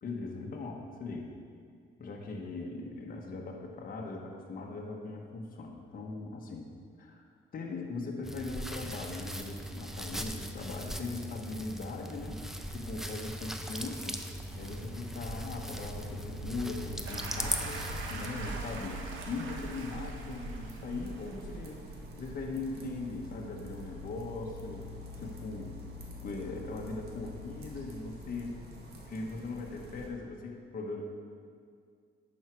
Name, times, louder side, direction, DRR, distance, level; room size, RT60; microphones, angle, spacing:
voice 1, 0.0-1.3 2.0-6.7 7.0-7.2 7.5-14.2 14.6-21.8 22.2-24.9 25.2-25.8 26.2-28.6 29.1-31.0, left 3 dB, 50° left, -1 dB, 1.4 m, -40 dB
Flesh Blood Slashing Guts Killing, 8.2-18.3, equal, ahead, 0.7 m, -39 dB
sound 1, 14.5-30.1, equal, 55° right, 1.8 m, -44 dB
sound 2, 17.1-21.7, right 3 dB, 85° right, 1.3 m, -44 dB
11.0 x 6.5 x 4.7 m, 2.2 s
cardioid pair, 95°, 19 cm